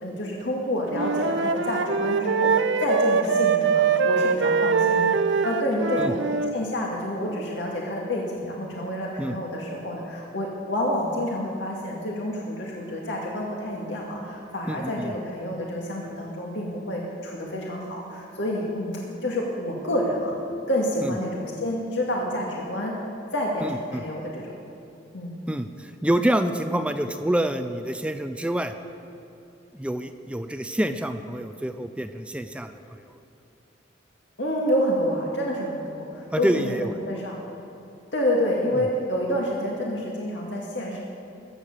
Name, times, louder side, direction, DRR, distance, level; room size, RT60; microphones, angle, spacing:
voice 1, 0.0-6.2 6.5-20.3 20.7-22.9 23.3-24.5 25.1-25.3 34.4-37.4 38.1-41.0, left 1 dB, 80° left, -2 dB, 2.0 m, -28 dB
Wind instrument woodwind instrument, 0.9-6.6, right 5 dB, 85° right, 0.7 m, -23 dB
voice 2, 14.7-15.1 21.0-21.2 23.6-24.0 25.5-28.7 29.7-33.1 36.3-36.9 38.7-38.9, right 1 dB, 5° right, 8 dB, 0.5 m, -27 dB
21.0 x 9.1 x 6.7 m, 2.8 s
head